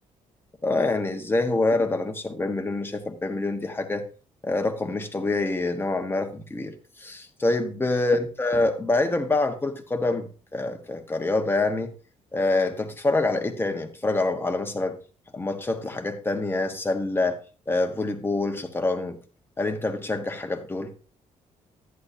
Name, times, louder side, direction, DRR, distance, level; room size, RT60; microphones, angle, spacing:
voice 1, 0.6-4.0 4.4-11.9 12.3-15.0 15.3-17.4 17.7-19.2 19.6-20.9, left 2 dB, 15° left, 5 dB, 1.4 m, -26 dB
11.0 x 9.9 x 2.7 m, 0.35 s
cardioid pair, 105°, 13 cm